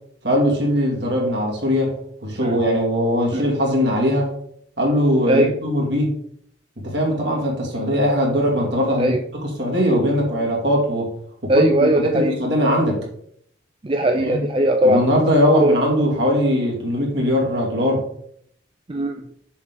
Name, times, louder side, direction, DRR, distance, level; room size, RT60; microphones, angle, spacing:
voice 1, 0.2-1.9 2.2-4.3 4.8-6.2 6.8-9.1 9.4-11.1 11.4-13.0 14.2-14.4 14.8-18.0, equal, 60° right, -1 dB, 2.6 m, -20 dB
voice 2, 11.5-12.4 13.8-15.0 15.6-15.8 18.9-19.2, right 1 dB, 25° right, 5 dB, 0.5 m, -19 dB
7.1 x 6.5 x 3.9 m, 0.67 s
head